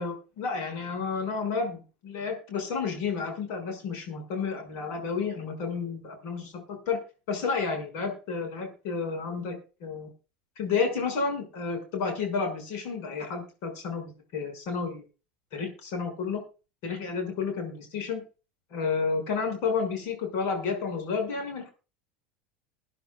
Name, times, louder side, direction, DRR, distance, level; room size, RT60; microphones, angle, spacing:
voice 1, 0.0-7.0 7.3-9.6 9.8-10.1 10.6-15.0 15.5-16.4 16.8-18.2 18.7-21.7, left 5 dB, 60° left, 4 dB, 6.1 m, -31 dB
22.0 x 10.0 x 2.4 m, 0.34 s
hypercardioid pair, 95°, 6 cm